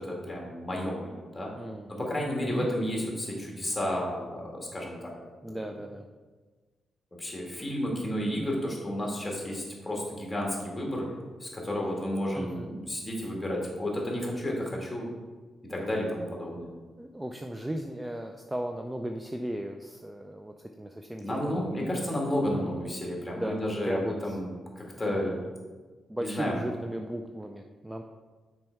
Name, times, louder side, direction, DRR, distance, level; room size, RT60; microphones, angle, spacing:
voice 1, 0.0-1.5 2.0-5.1 5.5-5.6 7.2-11.1 11.4-15.1 15.7-16.7 21.2-25.4 26.2-26.6, left 1 dB, 10° left, -2 dB, 2.0 m, -32 dB
voice 2, 1.6-2.0 2.4-2.7 5.4-6.1 12.3-12.7 17.0-22.1 22.5-22.8 23.3-24.4 25.1-25.4 26.1-28.0, right 1 dB, 10° right, 4 dB, 0.4 m, -36 dB
6.1 x 4.5 x 4.5 m, 1.4 s
cardioid pair, 90°, 0 cm